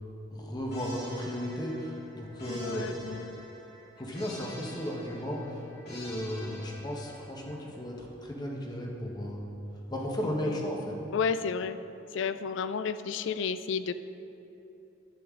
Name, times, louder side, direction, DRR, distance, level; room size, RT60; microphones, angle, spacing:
voice 1, 0.3-3.1 4.0-9.5 9.9-11.0, equal, 20° left, -1 dB, 1.1 m, -35 dB
sound 1, 0.7-7.6, equal, 55° left, 2.3 m, -48 dB
voice 2, 2.5-3.4 10.2-10.6 11.1-11.8 12.1-13.9, left 6 dB, 75° left, 12 dB, 0.4 m, -32 dB
11.0 x 8.0 x 3.7 m, 2.9 s
head